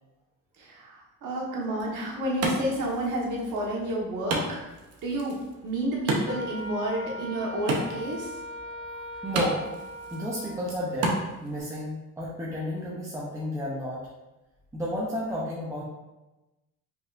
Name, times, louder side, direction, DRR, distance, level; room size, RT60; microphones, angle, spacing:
voice 1, 0.6-4.7 5.0-8.3, right 1 dB, 75° right, -2 dB, 1.4 m, -30 dB
Wood, 1.6-11.6, right 2 dB, 50° right, 0.9 m, -34 dB
Wind instrument woodwind instrument, 6.3-10.6, equal, 50° left, 0.6 m, -39 dB
voice 2, 9.1-9.6 10.1-14.0 14.7-15.8, equal, 10° right, -6 dB, 0.6 m, -32 dB
5.2 x 3.9 x 2.5 m, 1.0 s
cardioid pair, 155°, 32 cm